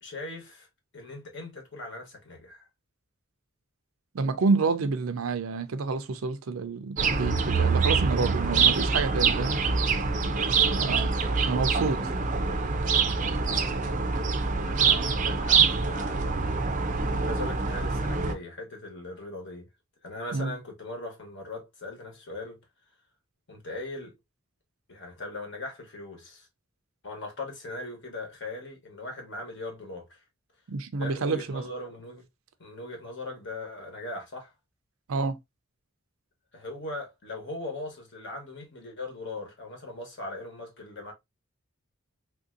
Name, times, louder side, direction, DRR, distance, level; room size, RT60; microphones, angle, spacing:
voice 1, 0.0-0.7 0.9-2.7 9.4-10.0 10.3-11.5 13.2-13.6 14.5-16.7 17.2-19.7 20.0-22.6 23.5-24.1 24.9-26.5 27.0-30.2 30.9-32.2 32.6-34.5 36.5-41.1, left 2 dB, 60° left, 1.1 m, -40 dB
voice 2, 4.1-9.6 10.7-11.2 11.5-12.1 20.3-20.5 30.7-31.6 35.1-35.4, right 4 dB, 90° right, 0.5 m, -28 dB
sound 1, 7.0-18.3, right 5 dB, 40° right, 0.4 m, -25 dB
3.4 x 2.6 x 2.5 m
head